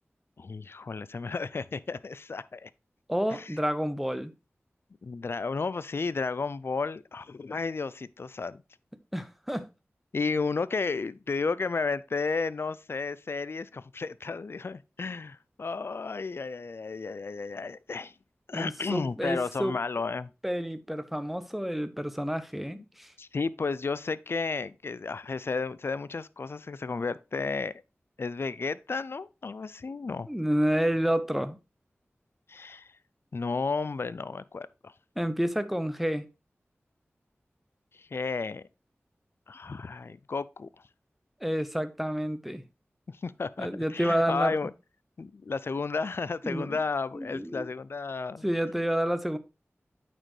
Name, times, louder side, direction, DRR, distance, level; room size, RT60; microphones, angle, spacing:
voice 1, 0.4-2.7 3.3-3.5 5.0-8.6 10.1-18.1 18.5-20.3 23.2-27.7 28.2-30.3 32.5-32.9 33.3-34.9 38.0-38.6 39.5-40.7 43.1-44.7 45.2-48.4, left 4 dB, 60° left, 0.3 m, -33 dB
voice 2, 3.1-4.3 9.1-9.7 18.5-19.8 20.4-23.1 30.3-31.6 35.2-36.3 41.4-42.6 43.6-44.5 46.4-46.8 47.1-47.7 48.4-49.4, equal, 5° right, 0.7 m, -29 dB
8.9 x 4.3 x 3.2 m
wide cardioid pair, 50°, 5 cm